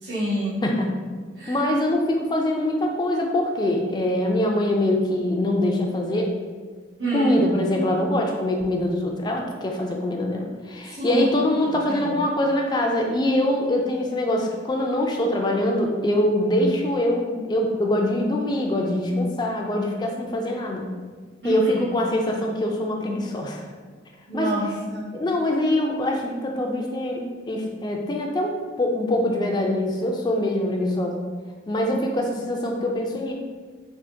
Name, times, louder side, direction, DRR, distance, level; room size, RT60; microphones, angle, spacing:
voice 1, 0.0-0.6 1.4-1.6 7.0-7.3 10.9-11.3 11.6-12.1 21.4-21.9 24.3-25.1, right 1 dB, 60° right, -10 dB, 1.1 m, -28 dB
voice 2, 1.5-6.3 7.1-20.9 21.4-23.6 24.3-24.5 25.1-31.2 31.7-33.3, left 1 dB, 20° left, 1 dB, 0.3 m, -23 dB
3.6 x 2.4 x 2.6 m, 1.5 s
head